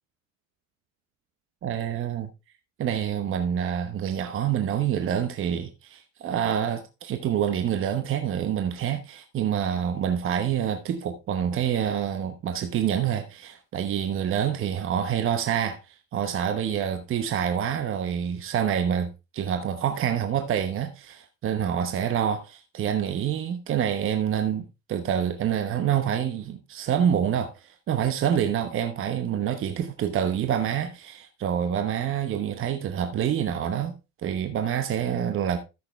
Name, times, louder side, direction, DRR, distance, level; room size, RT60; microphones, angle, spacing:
voice 1, 1.6-2.3 2.8-33.9 34.2-35.6, right 9 dB, 40° right, 1.0 m, -27 dB
13.0 x 6.8 x 3.2 m
cardioid pair, 145°, 31 cm